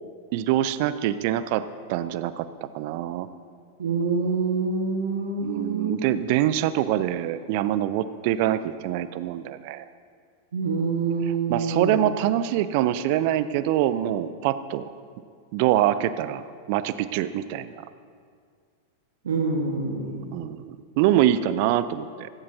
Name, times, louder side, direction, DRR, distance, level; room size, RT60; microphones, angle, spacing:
voice 1, 0.3-3.3 5.4-9.9 11.3-14.8 15.5-16.4 16.7-17.8 20.3-22.3, right 12 dB, 45° right, 14 dB, 0.5 m, -25 dB
voice 2, 3.8-6.0 10.5-12.0 19.2-20.2, right 4 dB, 65° right, 1 dB, 1.5 m, -26 dB
17.0 x 16.0 x 2.8 m, 2.1 s
figure-of-eight pair, 90°, 0 cm